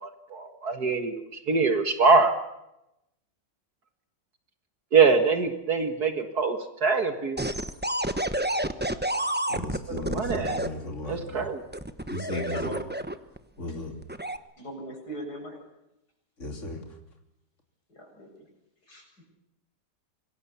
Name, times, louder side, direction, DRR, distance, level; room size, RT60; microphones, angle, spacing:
voice 1, 0.0-2.4 4.9-7.5 10.1-10.6 11.1-11.6, right 4 dB, 60° right, 7 dB, 2.3 m, -24 dB
sound 1, 7.4-10.7 11.7-13.4 14.0-14.4, right 1 dB, 10° right, 0.8 m, -29 dB
voice 2, 9.5-11.5 12.1-12.7 13.6-13.9 16.4-17.0, left 2 dB, 40° left, 3 dB, 3.5 m, -36 dB
voice 3, 12.3-12.8 14.6-15.6 17.9-18.3 18.9-19.2, equal, 65° left, 1 dB, 8.3 m, -38 dB
26.0 x 22.5 x 7.1 m, 0.87 s
omnidirectional pair, 1.9 m